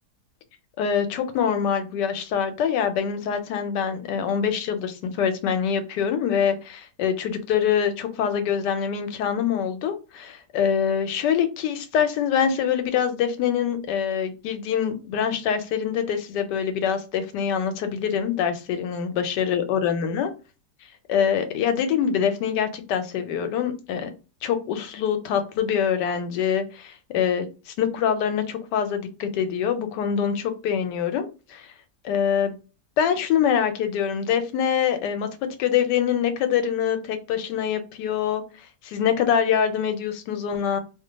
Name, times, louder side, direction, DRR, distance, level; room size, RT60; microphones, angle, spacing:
voice 1, 0.8-20.3 21.1-24.1 24.4-31.7 32.0-32.5 33.0-35.3 35.6-40.8, left 8 dB, 90° left, 1.2 m, -24 dB
2.7 x 2.2 x 3.8 m
omnidirectional pair, 1.8 m